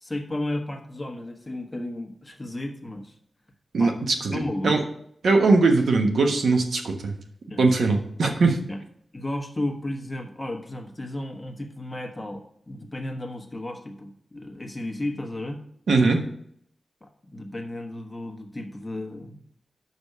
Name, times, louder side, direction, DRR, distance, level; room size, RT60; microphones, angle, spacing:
voice 1, 0.0-3.1 3.8-4.0 4.3-4.8 7.5-7.6 8.7-8.8 9.1-15.6 17.0-19.4, left 1 dB, 15° left, 4 dB, 1.2 m, -33 dB
voice 2, 3.7-4.8 5.2-7.1 7.6-8.6 15.9-16.2, right 3 dB, 85° right, 4 dB, 1.2 m, -21 dB
6.2 x 5.2 x 6.7 m, 0.67 s
wide cardioid pair, 110°, 0 cm